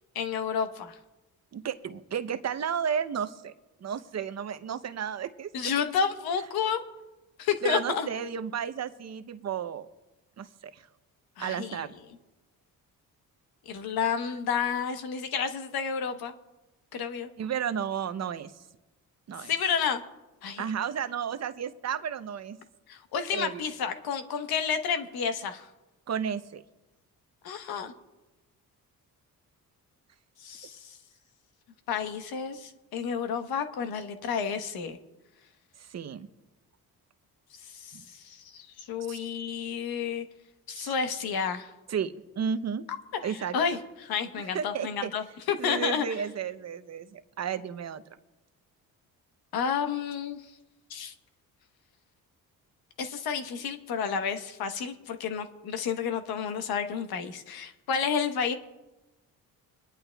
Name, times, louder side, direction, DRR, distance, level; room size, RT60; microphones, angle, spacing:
voice 1, 0.1-0.9 5.5-6.8 7.4-8.1 11.4-11.8 13.7-16.3 16.9-17.3 19.4-20.0 20.4-20.6 22.9-25.7 27.4-27.9 30.4-31.0 31.9-35.0 37.7-40.2 40.7-41.7 43.2-46.0 49.5-50.4 50.9-51.1 53.0-58.5, left 6 dB, 80° left, 7 dB, 1.1 m, -30 dB
voice 2, 1.5-3.5 3.8-5.7 7.6-9.9 10.4-10.9 11.4-11.9 17.4-18.5 19.3-19.5 20.6-22.6 23.3-23.6 26.1-26.6 35.8-36.3 37.9-38.0 39.1-39.2 40.8-40.9 41.9-42.8 43.2-43.6 44.4-45.1 45.6-48.0, right 8 dB, 45° right, 11 dB, 0.7 m, -33 dB
25.5 x 11.0 x 2.3 m, 1.1 s
cardioid pair, 95°, 36 cm